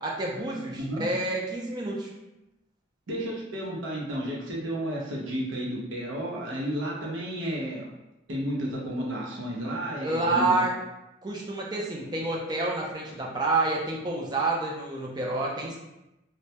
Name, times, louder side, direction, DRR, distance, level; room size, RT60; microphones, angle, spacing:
voice 1, 0.0-2.1 10.0-10.7 11.2-15.8, right 2 dB, 20° right, -2 dB, 0.3 m, -28 dB
voice 2, 3.1-7.9 8.3-10.6, equal, 85° right, -4 dB, 0.7 m, -32 dB
2.1 x 2.1 x 2.7 m, 0.93 s
head